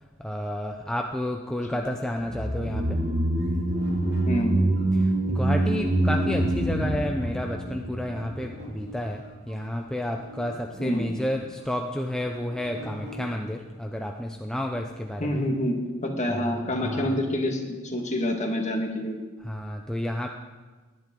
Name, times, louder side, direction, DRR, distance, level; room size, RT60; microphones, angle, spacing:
voice 1, 0.2-3.0 4.9-15.4 16.3-17.2 19.4-20.3, left 1 dB, 5° left, 2 dB, 0.5 m, -31 dB
sound 1, 2.2-8.7 8.9-9.0, right 1 dB, 35° right, 1.5 m, -25 dB
sound 2, 2.9-7.7 8.4-13.3, equal, 55° right, 3.0 m, -44 dB
voice 2, 4.2-4.6 10.8-11.1 15.2-19.2, left 1 dB, 35° left, 3 dB, 1.7 m, -27 dB
19.0 x 10.5 x 3.8 m, 1.3 s
head